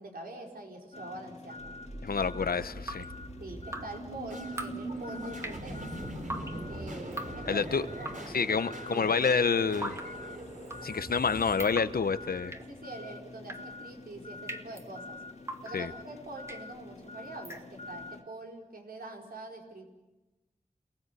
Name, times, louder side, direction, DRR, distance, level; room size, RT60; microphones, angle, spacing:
voice 1, 0.0-1.7 2.6-2.7 3.4-5.9 6.7-8.5 8.9-9.2 12.5-15.2 15.6-19.9, right 2 dB, 85° right, 1 dB, 4.5 m, -44 dB
sound 1, 0.9-18.2, left 3 dB, 45° left, 2.4 m, -47 dB
sound 2, 1.6-12.6, right 1 dB, 60° right, 4.9 m, -42 dB
voice 2, 2.0-3.0 7.5-7.9 8.3-10.0 10.8-12.5 15.7-15.9, left 5 dB, 80° left, 12 dB, 1.0 m, -28 dB
Drip, 2.6-18.1, right 1 dB, 20° right, 2.1 m, -44 dB
29.0 x 19.0 x 8.2 m, 1.1 s
wide cardioid pair, 70°, 15 cm